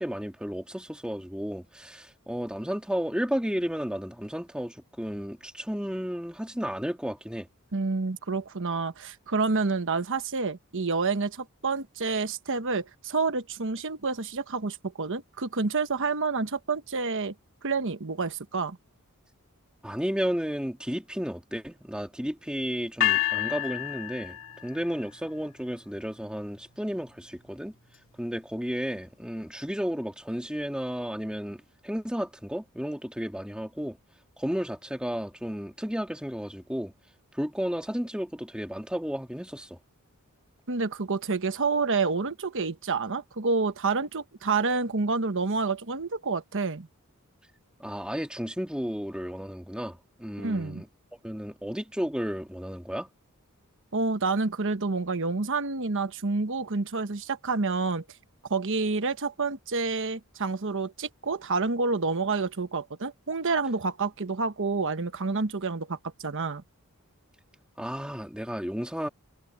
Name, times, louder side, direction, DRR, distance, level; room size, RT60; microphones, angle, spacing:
voice 1, 0.0-7.5 19.8-24.4 24.6-27.7 28.2-34.0 34.4-36.9 37.3-39.8 47.8-50.9 51.2-53.1 67.8-69.1, equal, 5° right, 2.9 m, -33 dB
voice 2, 7.7-17.3 17.6-18.8 40.7-46.9 50.4-50.8 53.9-58.0 58.5-66.6, right 4 dB, 60° right, 1.2 m, -28 dB
sound 1, 23.0-25.1, left 14 dB, 60° left, 3.0 m, -29 dB
head